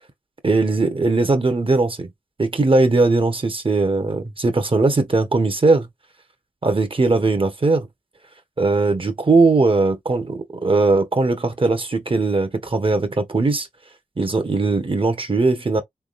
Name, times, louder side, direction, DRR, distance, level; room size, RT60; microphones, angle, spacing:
voice 1, 0.4-2.1 2.4-5.9 6.6-7.9 8.6-13.7 14.2-15.8, right 3 dB, 40° right, 1.2 m, -19 dB
3.6 x 3.5 x 2.5 m
cardioid pair, 60°, 14 cm